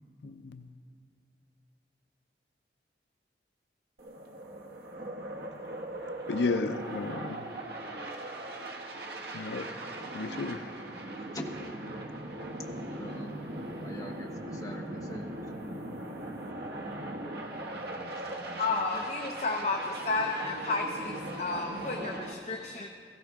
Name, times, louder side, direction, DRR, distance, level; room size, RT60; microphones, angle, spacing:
voice 1, 0.2-0.6 6.3-7.4 9.3-9.6 10.1-10.6, left 3 dB, 75° left, 8 dB, 0.5 m, -32 dB
Double Jet Fly Over, 4.0-22.3, right 1 dB, 65° right, 1.1 m, -39 dB
voice 2, 12.8-13.3 13.8-15.4 17.7-19.0, left 1 dB, 20° left, 0 dB, 1.1 m, -44 dB
voice 3, 18.6-22.9, left 3 dB, 40° left, 2 dB, 0.7 m, -32 dB
16.5 x 15.5 x 3.5 m, 2.3 s
head